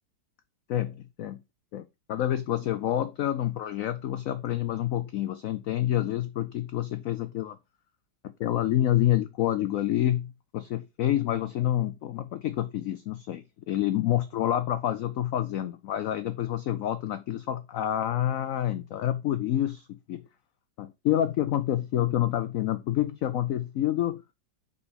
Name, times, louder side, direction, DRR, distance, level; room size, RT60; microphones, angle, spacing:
voice 1, 0.7-1.4 1.7-7.6 8.2-20.3 20.8-24.2, left 12 dB, 85° left, 0.7 m, -28 dB
5.6 x 5.1 x 4.0 m
omnidirectional pair, 2.0 m